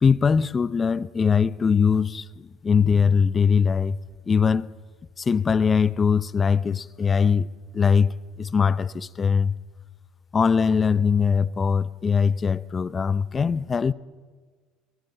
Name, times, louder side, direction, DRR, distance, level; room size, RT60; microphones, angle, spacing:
voice 1, 0.0-4.0 4.3-4.7 5.2-7.5 7.7-9.5 10.3-13.9, left 6 dB, 30° left, 0.7 m, -21 dB
22.5 x 19.5 x 8.0 m
supercardioid pair, 95°, 0 cm